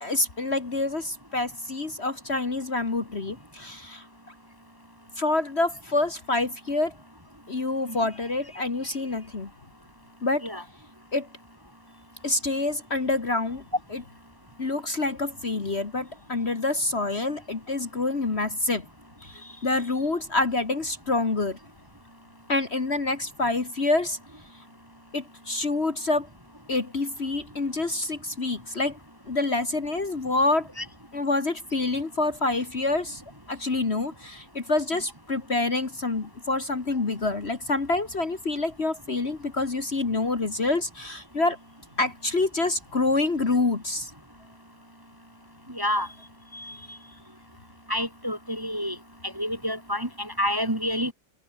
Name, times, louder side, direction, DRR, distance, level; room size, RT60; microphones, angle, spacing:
voice 1, 0.0-4.1 5.2-6.9 7.5-9.5 10.2-10.4 11.1-11.3 12.2-13.6 13.9-14.0 14.6-18.9 19.2-21.6 22.5-24.2 25.1-26.3 26.7-29.0 29.3-30.7 31.1-33.2 33.5-41.6 42.0-44.1 46.5-47.0, left 2 dB, 35° left, 2.1 m, -27 dB
voice 2, 45.7-46.1 47.9-49.0 49.2-51.1, equal, 10° right, 2.3 m, -28 dB
omnidirectional pair, 1.9 m